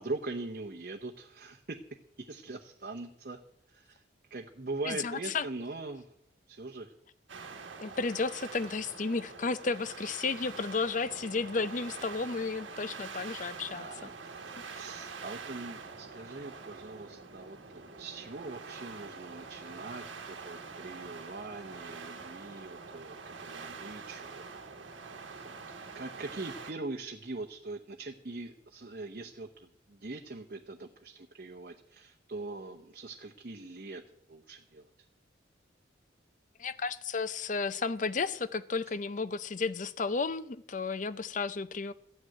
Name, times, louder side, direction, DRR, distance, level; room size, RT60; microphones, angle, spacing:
voice 1, 0.0-1.8 2.2-3.4 3.7-4.0 4.3-6.1 6.5-6.9 13.7-24.4 25.4-34.9, right 3 dB, 50° right, 0.8 m, -42 dB
voice 2, 4.9-5.5 7.8-13.9 14.7-14.8 36.6-41.9, left 4 dB, 40° left, 0.6 m, -33 dB
sound 1, 7.3-26.7, right 4 dB, 85° right, 1.2 m, -45 dB
14.0 x 6.4 x 9.0 m
head